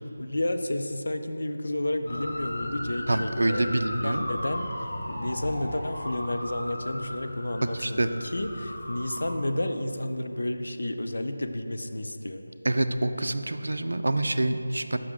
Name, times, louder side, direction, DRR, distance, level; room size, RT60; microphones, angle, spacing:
voice 1, 0.2-12.4, left 1 dB, 75° left, 7 dB, 0.5 m, -31 dB
sound 1, 2.1-9.4, left 1 dB, 40° left, 0.8 m, -36 dB
voice 2, 3.1-4.2 7.7-8.1 12.6-15.0, right 1 dB, 75° right, 9 dB, 0.4 m, -26 dB
6.5 x 6.0 x 3.6 m, 2.8 s
figure-of-eight pair, 175°, 0 cm